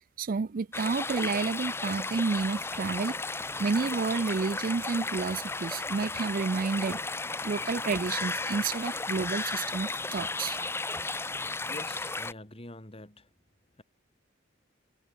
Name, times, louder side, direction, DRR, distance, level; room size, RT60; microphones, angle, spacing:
voice 1, 0.2-3.2 3.6-7.0 7.4-10.7, right 4 dB, 50° right, 0.5 m, -30 dB
sound 1, 0.7-12.3, left 3 dB, 15° left, 0.7 m, -34 dB
voice 2, 11.7-13.3, left 1 dB, 30° left, 2.9 m, -45 dB
head